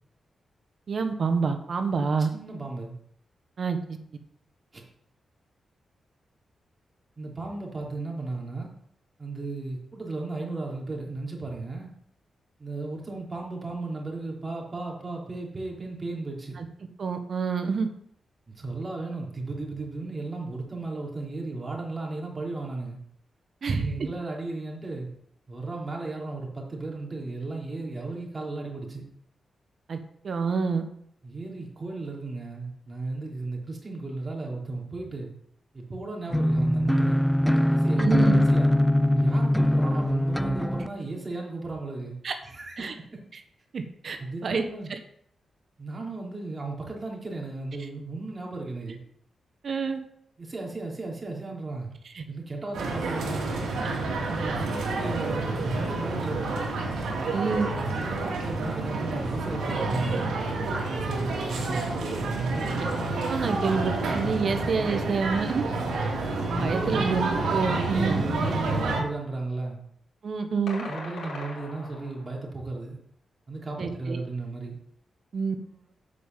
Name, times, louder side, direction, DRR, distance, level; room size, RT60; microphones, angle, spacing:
voice 1, 0.9-2.3 3.6-3.8 16.6-16.7 17.0-17.9 23.6-23.9 29.9-30.0 30.2-30.8 38.0-38.4 42.2-42.4 42.8-42.9 43.7-44.6 44.9-45.0 49.6-50.0 52.1-52.2 57.3-57.7 63.3-65.7 66.6-68.2 70.2-70.9 73.8-74.2 75.3-75.5, right 5 dB, 60° right, 7 dB, 1.2 m, -27 dB
voice 2, 2.3-2.9 4.7-4.8 7.2-8.7 9.2-11.9 12.6-16.6 18.5-23.0 23.7-25.1 25.5-29.0 31.2-35.3 35.7-37.2 37.7-38.7 39.0-42.2 42.4-43.1 44.2-44.9 45.8-49.0 50.4-51.9 52.3-53.5 53.9-56.5 57.2-57.3 57.8-60.4 60.9-62.8 66.5-67.1 67.7-69.8 70.8-73.0 73.5-74.8, right 3 dB, 35° right, -1 dB, 3.6 m, -35 dB
sound 1, 36.3-40.9, left 1 dB, 5° left, 0.4 m, -22 dB
sound 2, 52.7-69.0, right 3 dB, 90° right, 2.5 m, -29 dB
sound 3, 70.7-72.4, left 3 dB, 75° left, 4.2 m, -40 dB
8.4 x 5.5 x 7.5 m, 0.68 s
cardioid pair, 75°, 0 cm